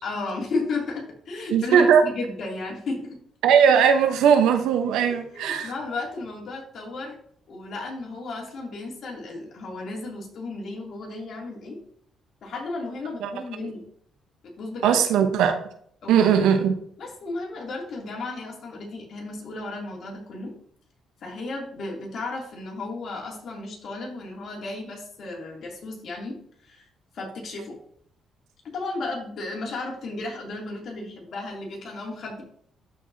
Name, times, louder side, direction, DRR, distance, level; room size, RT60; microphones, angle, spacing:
voice 1, 0.0-3.2 5.1-7.2 7.5-11.8 12.4-13.9 14.4-15.0 16.0-16.1 17.0-20.5 21.2-26.9 27.1-27.8 28.6-32.4, left 3 dB, 60° left, -2 dB, 2.9 m, -34 dB
voice 2, 1.5-2.0 3.4-5.7 13.2-13.3 14.8-15.5 16.1-16.7, right 7 dB, 90° right, 6 dB, 1.0 m, -19 dB
12.5 x 4.7 x 2.8 m, 0.64 s
cardioid pair, 90°, 0 cm